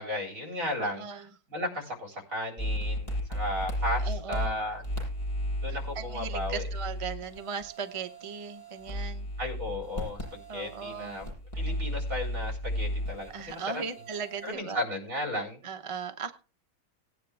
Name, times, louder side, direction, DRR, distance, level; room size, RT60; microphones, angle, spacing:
voice 1, 0.0-1.0 1.5-4.8 5.6-6.6 9.4-11.3 11.5-13.8 14.4-15.6, left 1 dB, 60° right, 1 dB, 4.4 m, -34 dB
voice 2, 0.8-1.3 4.0-4.6 5.7-9.3 10.5-11.2 13.3-14.8 15.6-16.3, right 6 dB, 30° right, 7 dB, 0.7 m, -38 dB
sound 1, 2.6-14.5, left 1 dB, 25° left, 7.4 m, -34 dB
18.0 x 9.6 x 3.4 m, 0.34 s
omnidirectional pair, 1.6 m